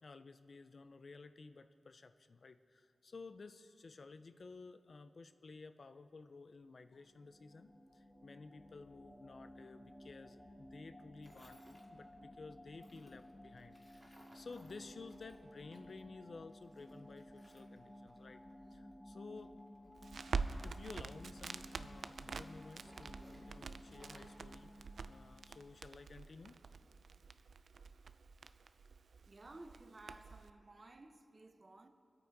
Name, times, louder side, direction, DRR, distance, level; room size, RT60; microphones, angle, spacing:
voice 1, 0.0-18.4 18.7-19.6 20.6-26.6, left 4 dB, 55° left, 0.5 m, -54 dB
sound 1, 6.8-25.7, left 1 dB, 15° left, 1.3 m, -56 dB
Tools, 11.2-11.9 12.7-16.0 16.3-18.6 19.2-20.9 21.2-24.4, equal, 5° right, 1.9 m, -65 dB
Crackle, 20.0-30.5, right 5 dB, 80° right, 0.4 m, -46 dB
voice 2, 29.3-31.9, right 2 dB, 35° right, 0.8 m, -56 dB
23.5 x 8.5 x 4.7 m
wide cardioid pair, 120°, 0 cm